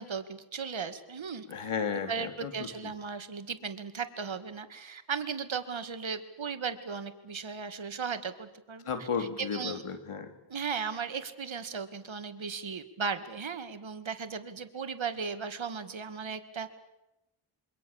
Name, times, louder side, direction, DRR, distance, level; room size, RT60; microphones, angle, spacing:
voice 1, 0.0-1.5 1.9-8.9 9.2-9.8 10.5-16.7, right 6 dB, 65° right, 10 dB, 2.2 m, -36 dB
voice 2, 1.5-2.9 8.8-10.3, left 6 dB, 85° left, 7 dB, 3.1 m, -34 dB
27.0 x 24.5 x 7.3 m, 0.93 s
cardioid pair, 65°, 50 cm